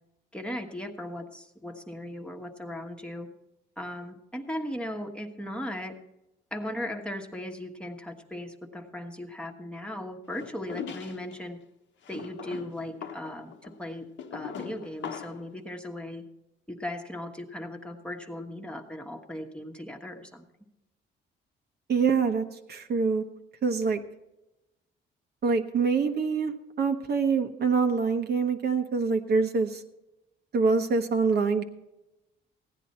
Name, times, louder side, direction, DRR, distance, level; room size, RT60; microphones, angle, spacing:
voice 1, 0.3-3.3 3.8-5.9 6.5-11.6 12.1-14.0 14.3-16.2 16.7-20.4, left 1 dB, 5° left, 2 dB, 1.3 m, -37 dB
sound 1, 10.4-11.4 12.0-15.5, left 7 dB, 70° left, 1.1 m, -41 dB
voice 2, 21.9-23.2 23.6-24.0 25.4-26.5 26.8-29.8 30.5-31.6, right 5 dB, 55° right, 5 dB, 1.1 m, -25 dB
15.5 x 10.0 x 4.3 m, 0.96 s
cardioid pair, 90°, 20 cm